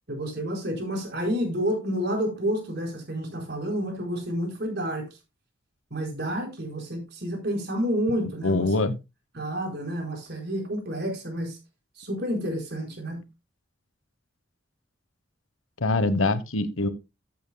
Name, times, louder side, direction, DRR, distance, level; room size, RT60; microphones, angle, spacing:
voice 1, 0.1-5.1 5.9-8.7 9.3-11.6 12.0-13.2, equal, 55° right, 4.3 m, -29 dB
voice 2, 8.4-9.0 15.8-16.9, left 2 dB, 90° left, 1.1 m, -24 dB
14.5 x 8.1 x 2.2 m
head